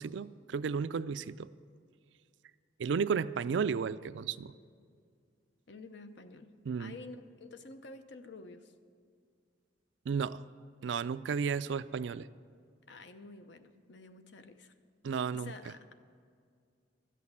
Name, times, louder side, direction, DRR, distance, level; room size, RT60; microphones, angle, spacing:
voice 1, 0.0-1.5 2.8-4.5 6.7-6.9 10.1-10.4 10.8-12.3 15.0-15.5, right 6 dB, 70° right, 15 dB, 0.4 m, -33 dB
voice 2, 5.7-6.5 6.8-8.7 12.9-14.7 15.3-15.9, left 3 dB, 65° left, 9 dB, 0.8 m, -49 dB
13.0 x 8.4 x 7.2 m, 2.2 s
head